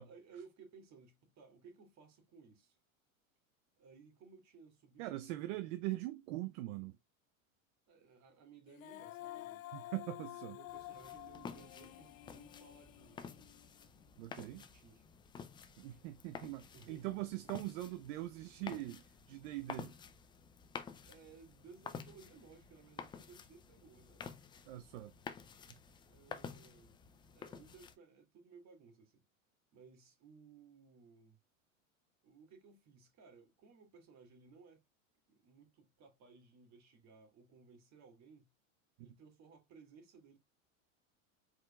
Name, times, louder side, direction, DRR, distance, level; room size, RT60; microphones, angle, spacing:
voice 1, 0.1-2.8 3.8-5.6 7.9-9.7 10.4-13.6 14.4-15.1 16.7-17.8 21.1-24.2 26.1-29.2 29.7-31.4 32.2-34.8 35.3-38.5 39.0-40.4, right 5 dB, 40° right, 2.4 m, -60 dB
voice 2, 5.0-6.9 9.7-10.6 14.2-14.6 15.8-19.9 24.7-25.1, right 16 dB, 60° right, 0.7 m, -42 dB
Female singing, 8.7-13.9, left 16 dB, 80° left, 0.5 m, -50 dB
sound 1, 10.7-28.0, left 6 dB, 10° left, 0.3 m, -51 dB
4.9 x 4.4 x 2.3 m
supercardioid pair, 120°, 40 cm